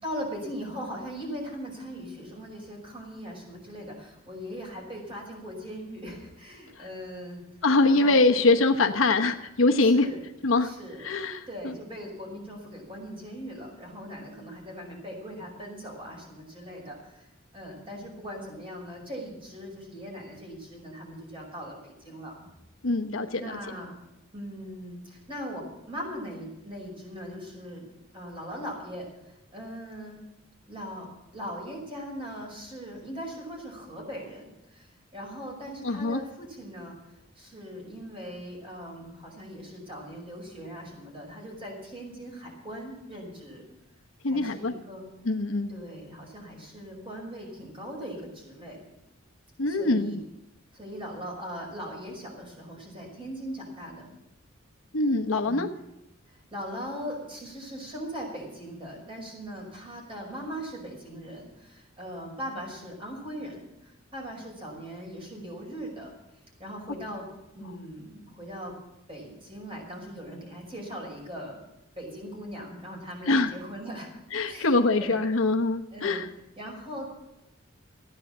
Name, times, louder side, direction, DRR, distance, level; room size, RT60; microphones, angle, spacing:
voice 1, 0.0-7.4 7.8-8.5 9.8-10.2 10.6-11.1 11.5-17.3 17.5-22.3 23.4-24.0 24.3-27.9 28.1-30.2 30.7-43.7 44.3-45.1 45.7-48.8 49.6-50.2 50.7-54.1 55.5-55.7 56.3-66.1 66.6-67.3 67.5-68.8 69.1-71.6 72.0-74.1 74.4-75.2 75.9-76.2 76.6-77.2, equal, 25° right, -1 dB, 5.4 m, -40 dB
voice 2, 7.6-10.1 10.4-10.7 11.0-11.7 22.8-23.6 35.8-36.2 44.2-44.7 45.2-45.7 49.6-50.2 54.9-55.7 73.3-73.5 74.3-76.3, left 3 dB, 70° left, 5 dB, 1.0 m, -23 dB
15.0 x 9.7 x 7.4 m, 0.92 s
head